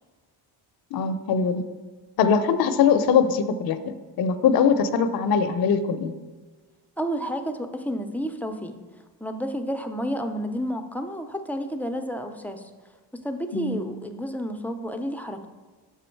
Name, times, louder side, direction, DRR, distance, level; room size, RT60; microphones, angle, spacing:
voice 1, 0.9-1.6 2.2-6.1 13.5-13.8, left 6 dB, 55° left, 8 dB, 0.5 m, -22 dB
voice 2, 7.0-8.8 9.2-12.6 13.1-15.5, equal, 5° left, 5 dB, 0.4 m, -30 dB
6.2 x 4.8 x 4.5 m, 1.4 s
cardioid pair, 90°, 45 cm